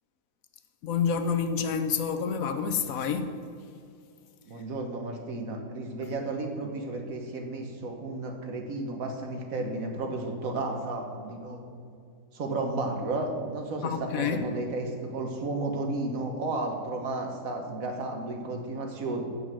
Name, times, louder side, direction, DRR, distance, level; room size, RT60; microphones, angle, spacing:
voice 1, 0.8-3.4 13.8-14.4, left 6 dB, 70° left, 8 dB, 1.1 m, -28 dB
voice 2, 4.5-11.6 12.3-19.2, right 2 dB, 65° right, 3 dB, 1.6 m, -33 dB
7.2 x 6.8 x 7.3 m, 2.4 s
omnidirectional pair, 1.6 m